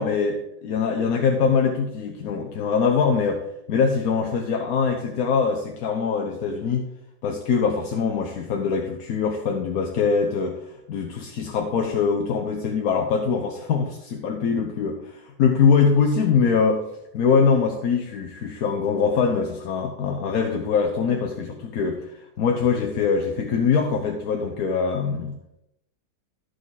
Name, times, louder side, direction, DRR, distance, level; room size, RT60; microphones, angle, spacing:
voice 1, 0.0-3.4 3.7-6.9 7.2-10.6 10.9-16.8 17.1-22.1 22.4-25.4, left 5 dB, 65° left, 2 dB, 1.1 m, -23 dB
13.0 x 4.9 x 4.0 m, 0.84 s
omnidirectional pair, 1.9 m